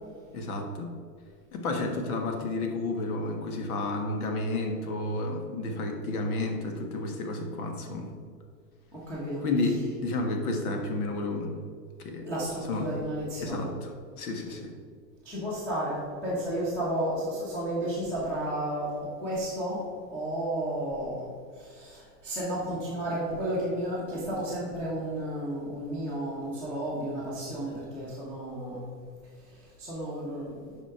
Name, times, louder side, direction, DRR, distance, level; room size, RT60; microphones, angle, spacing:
voice 1, 0.3-1.0 1.5-8.2 9.4-11.6 12.0-12.3 12.7-12.9 13.4-13.9 14.2-14.7, left 2 dB, 60° left, 3 dB, 1.5 m, -31 dB
voice 2, 8.9-9.8 12.2-13.7 14.5-14.6 15.2-21.3 21.5-28.9 29.4-30.8, right 1 dB, 5° left, -9 dB, 1.1 m, -33 dB
7.2 x 5.2 x 4.9 m, 2.1 s
supercardioid pair, 165°, 50 cm